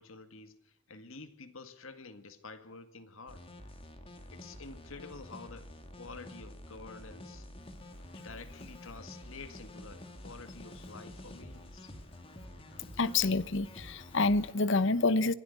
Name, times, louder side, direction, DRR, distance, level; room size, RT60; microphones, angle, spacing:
voice 1, 0.0-3.5 4.3-7.5 8.2-11.9, left 3 dB, 80° left, 1.9 m, -49 dB
sound 1, 3.3-14.5, left 1 dB, 25° left, 2.4 m, -49 dB
voice 2, 13.0-15.3, left 3 dB, 65° left, 0.9 m, -27 dB
25.5 x 16.5 x 8.3 m
head